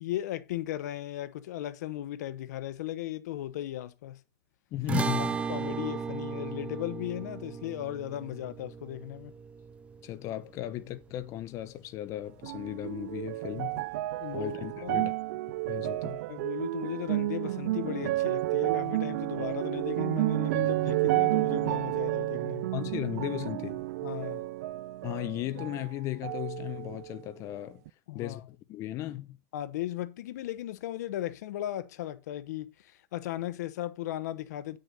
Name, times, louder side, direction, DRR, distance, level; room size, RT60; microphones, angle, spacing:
voice 1, 0.0-4.2 5.2-9.3 14.2-15.1 16.3-22.7 24.0-24.4 28.1-28.4 29.5-34.8, left 13 dB, 85° left, 0.9 m, -36 dB
voice 2, 4.7-5.4 10.0-13.8 14.3-15.1 15.7-16.2 22.7-23.8 25.0-27.8 28.1-29.4, left 14 dB, 35° left, 0.9 m, -36 dB
sound 1, 4.9-11.4, right 6 dB, 15° right, 0.5 m, -36 dB
sound 2, 12.4-25.9 26.2-27.2 27.8-27.9, right 18 dB, 70° right, 0.4 m, -31 dB
8.8 x 6.4 x 5.5 m
supercardioid pair, 160°, 9 cm